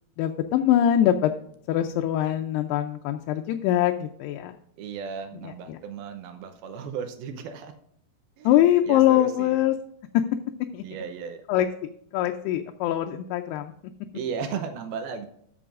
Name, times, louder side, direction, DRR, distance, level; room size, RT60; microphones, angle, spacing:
voice 1, 0.2-1.3 1.7-4.6 5.4-5.8 8.4-9.8 10.7-10.8 11.5-13.7, left 12 dB, 90° left, 4 dB, 2.7 m, -23 dB
voice 2, 4.8-7.7 8.4-8.5 8.8-9.6 10.8-11.4 14.1-15.3, right 6 dB, 80° right, 6 dB, 2.6 m, -35 dB
13.0 x 7.1 x 2.5 m, 0.69 s
omnidirectional pair, 4.6 m